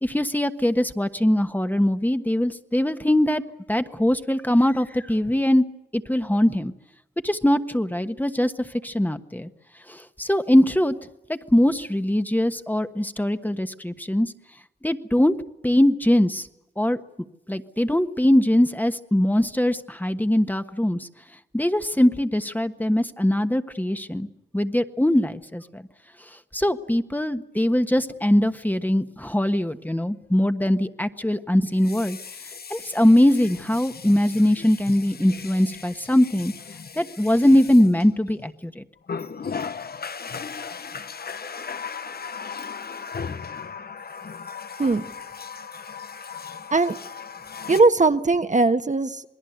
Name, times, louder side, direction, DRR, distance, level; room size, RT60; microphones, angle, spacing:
voice 1, 0.0-3.4 3.7-5.6 5.9-6.7 7.2-9.5 9.9-10.9 11.3-14.3 14.8-15.3 15.6-16.5 16.8-17.0 17.5-21.1 21.5-24.3 24.5-25.8 26.5-32.2 32.7-36.5 37.0-38.8, left 1 dB, 10° left, 9 dB, 1.3 m, -21 dB
Water tap faucet, 28.1-28.2 31.7-38.5 39.0-47.8, left 6 dB, 65° left, 1.0 m, -37 dB
voice 2, 47.7-49.2, right 3 dB, 45° right, 8 dB, 1.4 m, -19 dB
27.5 x 21.0 x 8.0 m, 0.88 s
wide cardioid pair, 85°, 17 cm